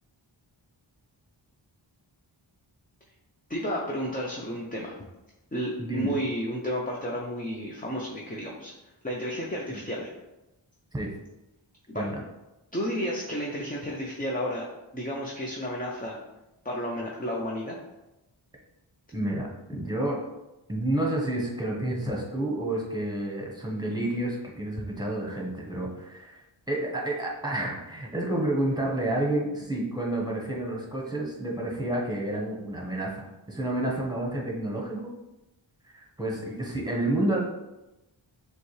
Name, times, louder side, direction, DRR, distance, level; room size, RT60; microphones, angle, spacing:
voice 1, 3.5-5.0 5.5-8.7 9.0-10.1 11.9-12.1 12.7-14.7 14.9-16.2 16.6-17.8, equal, 15° left, -2 dB, 0.6 m, -32 dB
voice 2, 5.8-6.1 9.7-9.8 10.9-11.1 11.9-12.2 19.1-20.2 20.7-26.4 26.7-35.0 35.9-37.4, right 1 dB, 10° right, -3 dB, 1.1 m, -30 dB
6.7 x 2.3 x 3.2 m, 0.98 s
wide cardioid pair, 55°, 48 cm